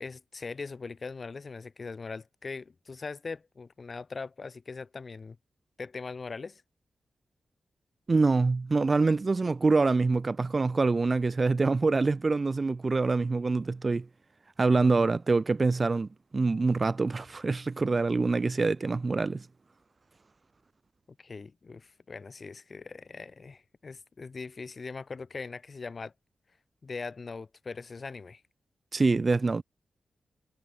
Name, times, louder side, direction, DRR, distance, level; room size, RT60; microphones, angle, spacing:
voice 1, 0.0-5.4 5.8-6.6 21.2-26.1 26.8-28.4, left 4 dB, 45° left, 7.3 m, -41 dB
voice 2, 8.1-14.1 14.6-19.5 28.9-29.6, right 3 dB, 35° right, 1.5 m, -25 dB
wide cardioid pair, 95°, 0 cm